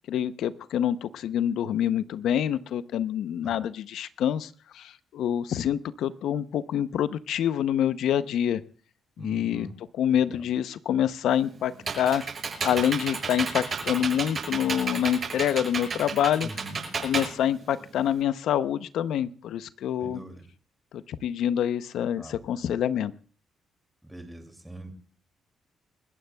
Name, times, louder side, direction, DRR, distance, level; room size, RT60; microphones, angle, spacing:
voice 1, 0.1-8.6 9.2-9.7 10.0-12.2 12.6-16.5 17.0-20.2 20.9-23.1, left 10 dB, 75° left, 13 dB, 0.6 m, -26 dB
voice 2, 9.2-9.8 10.3-10.4 16.4-16.8 20.0-20.4 22.2-22.3 24.0-24.9, right 1 dB, 10° right, 6 dB, 2.4 m, -42 dB
Computer keyboard, 11.3-18.2, right 5 dB, 45° right, 7.0 m, -32 dB
29.0 x 14.5 x 2.3 m, 0.41 s
cardioid pair, 90°, 0 cm